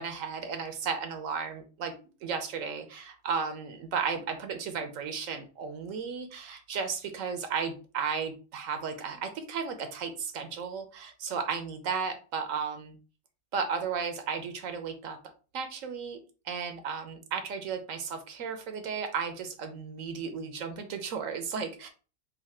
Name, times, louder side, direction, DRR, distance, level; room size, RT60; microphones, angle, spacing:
voice 1, 0.0-1.9 2.2-13.0 13.5-15.2 15.5-16.2 16.4-21.9, right 6 dB, 80° right, 7 dB, 1.2 m, -34 dB
4.0 x 2.7 x 4.2 m, 0.35 s
omnidirectional pair, 1.3 m